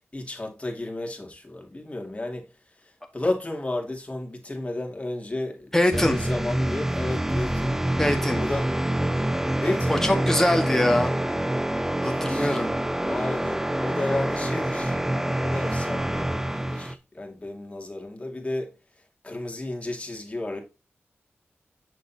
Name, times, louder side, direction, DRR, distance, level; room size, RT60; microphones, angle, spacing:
voice 1, 0.1-2.5 2.8-7.8 8.3-8.7 9.6-10.3 12.0-12.6 13.0-18.7 19.2-20.6, left 2 dB, 25° left, 2.4 m, -32 dB
voice 2, 5.7-6.2 8.0-8.4 9.9-11.1 12.0-12.8, left 1 dB, 10° left, 1.8 m, -23 dB
sound 1, 5.9-16.9, right 1 dB, 10° right, 0.6 m, -26 dB
7.7 x 6.6 x 2.8 m
wide cardioid pair, 70°, 5 cm